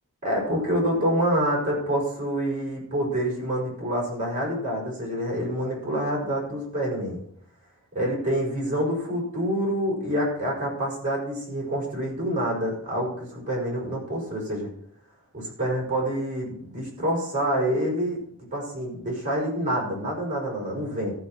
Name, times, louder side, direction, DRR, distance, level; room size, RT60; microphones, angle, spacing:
voice 1, 0.2-7.2 7.9-14.7 15.3-18.2 18.5-21.1, equal, 35° right, -2 dB, 5.3 m, -27 dB
13.5 x 6.2 x 6.0 m, 0.68 s
head